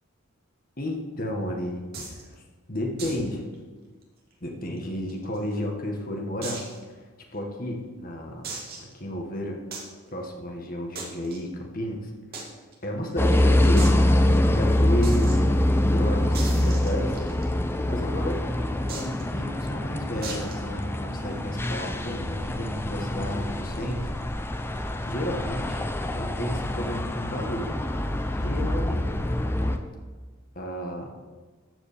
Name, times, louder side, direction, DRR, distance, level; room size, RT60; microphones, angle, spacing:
voice 1, 0.8-2.3 2.7-3.4 4.4-7.0 7.3-9.6 10.1-12.1 12.8-13.9 14.5-17.2 17.8-24.1 25.1-25.9 26.1-27.7 28.3-29.1 29.6-29.7 30.5-31.1, equal, 40° left, 1 dB, 1.6 m, -32 dB
sound 1, 1.9-2.2 3.0-3.3 3.5-3.6 4.0-4.1 4.8-5.5 6.4-6.8 7.3-7.4 8.4-8.9 9.7-9.9 10.9-11.4 12.3-12.4 12.7-12.8 13.1-13.2 13.8-14.0 15.0-15.4 16.3-17.4 18.9-19.2 20.2-20.6, right 3 dB, 45° right, 2.3 m, -37 dB
sound 2, 13.2-29.8, left 1 dB, 10° left, 0.6 m, -25 dB
14.0 x 5.1 x 6.8 m, 1.4 s
head